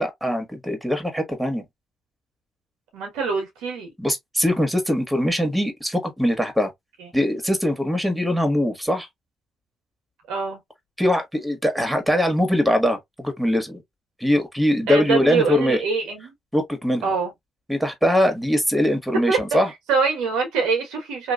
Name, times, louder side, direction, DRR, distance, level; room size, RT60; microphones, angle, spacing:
voice 1, 0.0-1.6 4.0-6.7 7.1-9.1 11.0-13.8 14.2-15.8 16.5-17.1 17.7-19.7, equal, 5° right, 1.2 m, -22 dB
voice 2, 2.9-3.9 7.0-7.1 10.3-10.6 14.9-16.3 17.0-17.3 19.3-19.4 19.9-21.3, right 4 dB, 90° right, 1.3 m, -24 dB
3.0 x 2.3 x 2.4 m
supercardioid pair, 60°, 0 cm